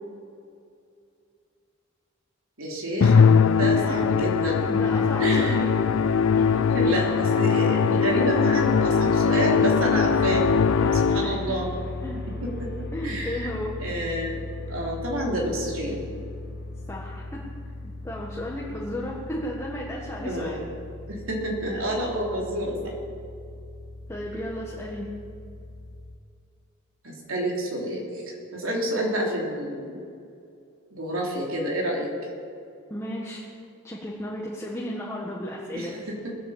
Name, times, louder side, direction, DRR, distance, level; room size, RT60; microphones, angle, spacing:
voice 1, 2.6-3.2 3.6-4.6 5.2-5.7 6.5-10.5 11.1-11.7 12.4-14.4 14.7-16.0 20.2-20.6 21.1-22.9 27.0-30.0 30.9-32.1 35.7-36.3, right 1 dB, 75° right, -1 dB, 3.2 m, -29 dB
Musical instrument, 3.0-11.5, left 6 dB, 65° left, 0.4 m, -21 dB
voice 2, 4.7-5.7 6.4-6.5 10.8-11.5 12.0-12.2 12.9-13.7 16.9-17.4 17.8-20.6 24.1-25.1 32.9-33.4 33.8-35.9, left 1 dB, 15° left, -4 dB, 1.6 m, -34 dB
sound 1, 10.1-26.2, left 2 dB, 50° left, 1.0 m, -37 dB
21.0 x 8.4 x 7.1 m, 2.4 s
head